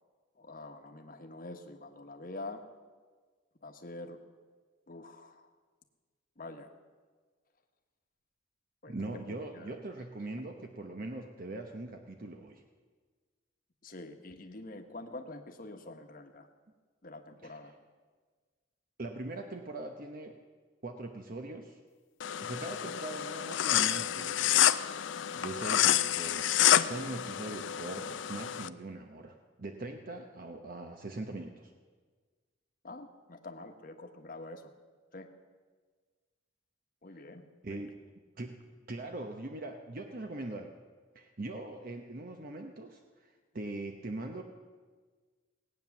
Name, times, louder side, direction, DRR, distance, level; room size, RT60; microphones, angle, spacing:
voice 1, 0.4-2.6 3.6-4.2 4.9-5.5 6.4-6.7 8.8-9.8 13.8-16.5 17.0-17.7 22.8-23.0 32.8-34.7 35.1-35.3 37.0-37.4 37.7-37.8, left 2 dB, 45° left, 5 dB, 1.2 m, -46 dB
voice 2, 8.9-12.6 17.4-17.5 19.0-20.4 20.8-21.8 22.4-24.9 25.3-26.6 26.9-31.7 37.6-37.9 38.4-40.7 41.1-44.4, right 2 dB, 50° right, 4 dB, 0.9 m, -41 dB
sound 1, 22.2-28.7, left 11 dB, 75° left, 0.5 m, -28 dB
18.0 x 9.0 x 7.1 m, 1.5 s
head